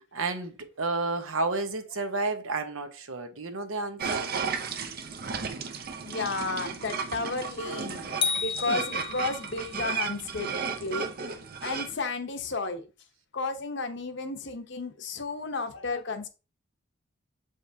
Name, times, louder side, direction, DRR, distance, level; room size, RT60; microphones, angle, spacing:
voice 1, 0.1-4.3, right 3 dB, 75° right, 1.0 m, -31 dB
sound 1, 4.0-11.9, right 5 dB, 45° right, 0.6 m, -34 dB
voice 2, 6.0-11.1 11.6-12.9 13.3-16.3, left 3 dB, 55° left, 0.8 m, -33 dB
sound 2, 8.2-9.6, left 6 dB, 25° left, 0.4 m, -31 dB
7.3 x 5.1 x 2.7 m
head